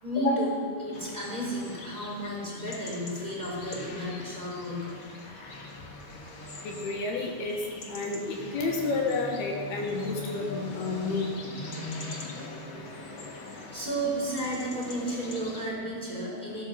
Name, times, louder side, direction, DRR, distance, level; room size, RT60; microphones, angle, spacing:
voice 1, 0.0-5.0 13.5-16.6, right 1 dB, 10° right, -5 dB, 3.6 m, -33 dB
sound 1, 0.9-15.7, left 2 dB, 55° left, 1.4 m, -42 dB
voice 2, 6.6-7.6 7.9-11.3, left 3 dB, 75° left, 1 dB, 3.2 m, -30 dB
15.5 x 10.0 x 6.5 m, 2.3 s
omnidirectional pair, 4.7 m